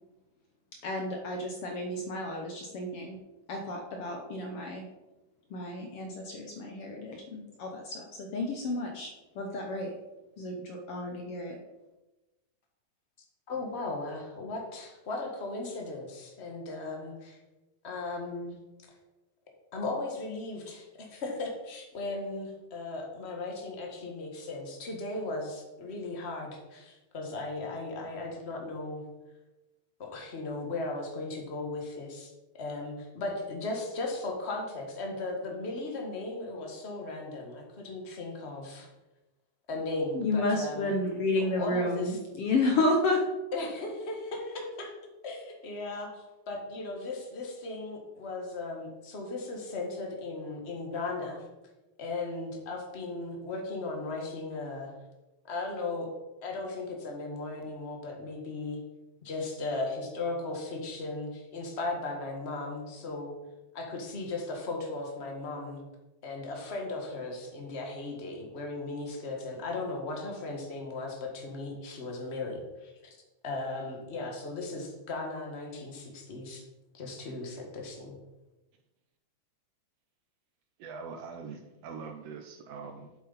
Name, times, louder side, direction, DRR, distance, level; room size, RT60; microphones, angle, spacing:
voice 1, 0.8-3.2 3.5-4.9 5.5-9.9 10.4-11.6 40.1-43.2, left 2 dB, 65° left, 2 dB, 1.5 m, -31 dB
voice 2, 13.5-17.4 17.8-18.5 19.7-29.1 30.0-32.3 32.6-38.9 39.7-40.9 41.5-42.1 43.5-44.9 45.2-51.4 52.0-55.0 55.5-56.1 56.4-58.8 59.2-63.3 63.7-65.8 66.2-73.2 73.4-76.6 76.9-78.1, left 2 dB, 40° left, 1 dB, 0.9 m, -37 dB
voice 3, 80.8-83.1, right 5 dB, 75° right, 5 dB, 1.5 m, -43 dB
8.4 x 7.7 x 4.0 m, 1.0 s
omnidirectional pair, 3.6 m